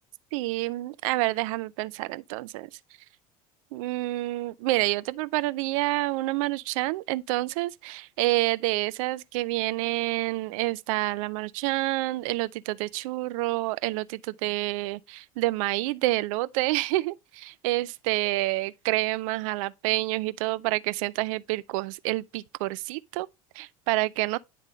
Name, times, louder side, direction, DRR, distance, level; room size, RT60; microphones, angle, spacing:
voice 1, 0.3-2.7 3.7-23.3 23.6-24.4, right 19 dB, 65° right, 0.5 m, -28 dB
9.9 x 3.6 x 3.8 m
hypercardioid pair, 80°, 18 cm